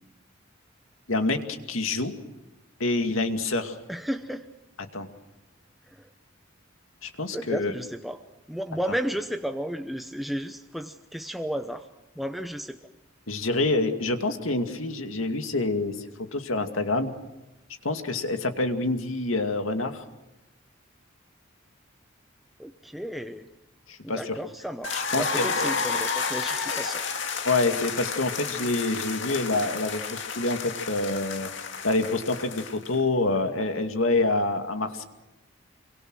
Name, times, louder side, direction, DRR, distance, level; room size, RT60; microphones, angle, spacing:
voice 1, 1.1-1.4 1.7-2.2 2.8-3.8 4.9-5.1 7.0-7.7 13.3-15.9 16.3-17.1 17.8-20.0 23.9-24.4 25.0-25.8 27.4-31.5 31.8-35.0, left 2 dB, 90° left, 6 dB, 2.4 m, -27 dB
voice 2, 3.9-4.5 5.9-6.1 7.3-8.2 8.5-11.9 12.2-12.8 22.6-23.5 24.0-27.0, equal, ahead, 7 dB, 0.8 m, -33 dB
sound 1, 24.8-33.0, left 5 dB, 65° left, 2.1 m, -31 dB
26.5 x 25.0 x 6.3 m, 1.0 s
head